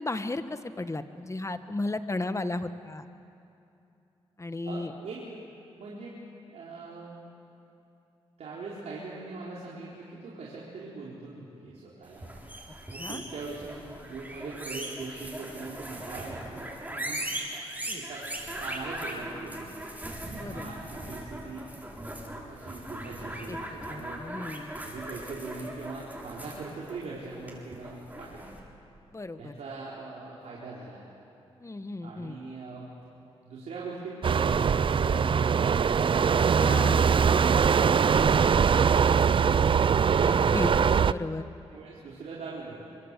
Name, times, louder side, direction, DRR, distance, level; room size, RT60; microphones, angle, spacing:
voice 1, 0.0-3.1 4.4-4.9 13.0-13.2 17.9-18.0 20.4-20.7 23.5-23.6 23.9-24.8 29.1-29.5 31.6-32.4 36.6-37.0 40.2-40.7 41.1-41.4, left 2 dB, 25° left, 10 dB, 1.6 m, -34 dB
voice 2, 4.7-5.2 5.8-6.1 6.5-7.3 8.4-12.3 12.9-17.3 17.9-18.3 18.6-19.7 20.1-21.7 22.5-24.2 24.8-28.5 29.4-31.0 32.0-32.9 33.4-35.4 35.9-37.0 37.6-41.3 41.7-43.0, right 3 dB, 75° right, -5 dB, 4.2 m, -41 dB
sound 1, 12.1-28.6, right 1 dB, 15° right, 7.2 m, -39 dB
sound 2, 34.2-41.1, right 6 dB, 50° right, 0.5 m, -22 dB
24.5 x 24.5 x 8.3 m, 2.7 s
supercardioid pair, 50°, 11 cm